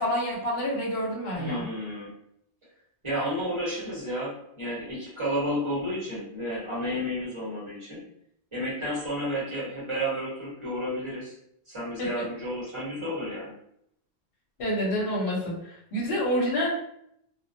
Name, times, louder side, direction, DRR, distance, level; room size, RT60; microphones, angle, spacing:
voice 1, 0.0-1.6 12.0-12.2 14.6-16.7, equal, 60° left, -3 dB, 0.9 m, -28 dB
voice 2, 1.4-2.1 3.0-8.0 8.5-11.4 11.7-13.5, equal, 30° right, -7 dB, 1.0 m, -31 dB
2.2 x 2.1 x 2.6 m, 0.72 s
omnidirectional pair, 1.1 m